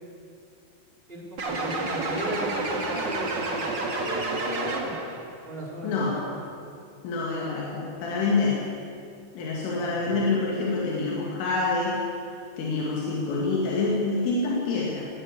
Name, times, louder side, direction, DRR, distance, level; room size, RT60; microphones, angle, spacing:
voice 1, 1.1-5.1 5.4-6.3 9.8-10.3, right 1 dB, 15° right, -4 dB, 3.5 m, -36 dB
sound 1, 1.4-5.2, right 2 dB, 40° right, 1.6 m, -29 dB
voice 2, 5.8-6.2 7.0-8.6 9.3-12.0 12.6-15.1, left 3 dB, 90° left, -3 dB, 4.9 m, -26 dB
18.5 x 18.0 x 8.3 m, 2.4 s
omnidirectional pair, 5.5 m